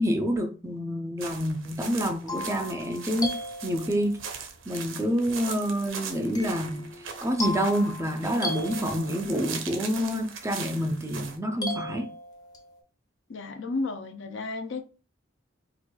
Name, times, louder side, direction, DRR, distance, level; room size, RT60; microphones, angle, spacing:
voice 1, 0.0-3.4 3.6-4.2 4.7-6.9 7.2-12.1, equal, 15° right, 0.5 m, -28 dB
sound 1, 1.2-11.4, right 6 dB, 75° right, 0.7 m, -40 dB
sound 2, 1.8-4.3 6.3-9.5 11.6-12.8, left 1 dB, 20° left, 0.7 m, -37 dB
voice 2, 13.3-14.9, left 3 dB, 65° left, 0.6 m, -33 dB
4.5 x 2.5 x 2.2 m
head